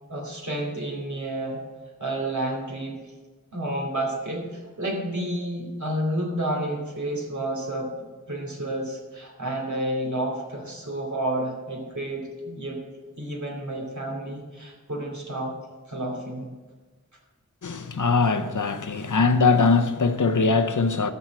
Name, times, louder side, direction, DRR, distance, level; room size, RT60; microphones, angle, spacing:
voice 1, 0.1-1.6 2.0-3.1 3.5-7.9 8.3-12.8 13.2-15.5 15.9-16.5, right 1 dB, 70° right, 2.7 m, -30 dB
voice 2, 17.6-21.1, left 4 dB, 85° left, 0.8 m, -21 dB
13.5 x 4.7 x 7.5 m
wide cardioid pair, 40°, 30 cm